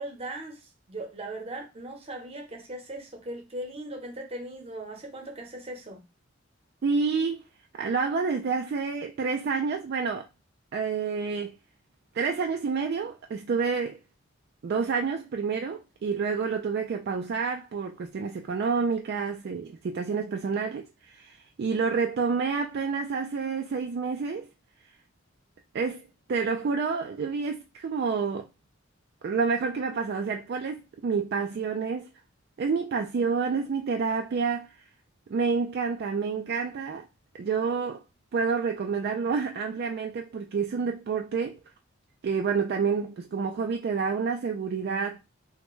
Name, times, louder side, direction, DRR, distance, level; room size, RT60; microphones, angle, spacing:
voice 1, 0.0-6.0, right 1 dB, 30° right, 0.8 m, -39 dB
voice 2, 6.8-7.4 7.7-10.3 10.7-11.6 12.1-14.0 14.6-24.5 25.7-26.0 26.3-28.5 29.2-32.1 32.6-34.8 35.3-37.1 37.3-38.0 38.3-41.6 42.2-45.2, right 5 dB, 50° right, 0.3 m, -28 dB
3.3 x 2.1 x 3.0 m
head